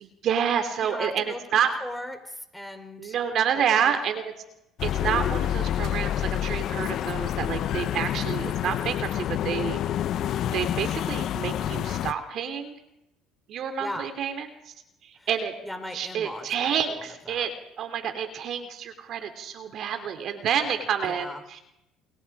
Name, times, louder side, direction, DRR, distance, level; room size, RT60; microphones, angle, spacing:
voice 1, 0.0-1.8 3.0-4.3 4.8-9.8 10.4-12.8 13.5-14.5 15.0-15.5 15.9-17.5 17.8-21.6, right 8 dB, 55° right, 7 dB, 3.4 m, -28 dB
voice 2, 0.8-3.2 3.5-3.9 13.8-14.1 15.2-15.3 15.6-17.5 21.1-21.4, left 1 dB, 5° left, 6 dB, 4.5 m, -38 dB
sound 1, 4.8-12.1, left 11 dB, 60° left, 1.0 m, -28 dB
29.5 x 28.5 x 5.0 m, 0.87 s
supercardioid pair, 85°, 0 cm